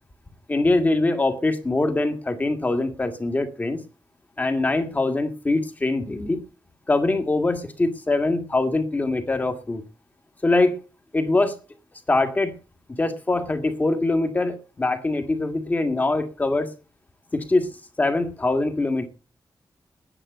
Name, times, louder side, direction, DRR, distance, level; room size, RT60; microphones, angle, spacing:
voice 1, 0.5-3.8 4.4-6.4 6.9-9.8 10.4-10.8 11.1-11.6 12.1-12.5 13.0-16.7 17.3-17.7 18.0-19.1, left 2 dB, 20° left, 7 dB, 2.0 m, -23 dB
10.0 x 10.0 x 8.0 m, 0.36 s
wide cardioid pair, 165°, 8 cm